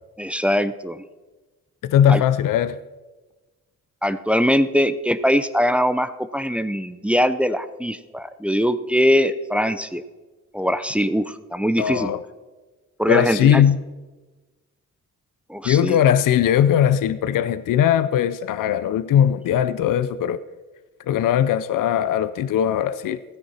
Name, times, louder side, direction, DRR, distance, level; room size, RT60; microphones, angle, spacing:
voice 1, 0.2-1.0 2.1-2.2 4.0-10.0 10.5-12.1 13.0-13.6 15.5-16.0, equal, 5° right, 0.6 m, -22 dB
voice 2, 1.8-2.8 11.8-12.2 13.1-13.8 15.6-20.4 21.1-23.2, left 10 dB, 80° left, 0.6 m, -19 dB
16.0 x 9.7 x 4.2 m
cardioid pair, 100°, 32 cm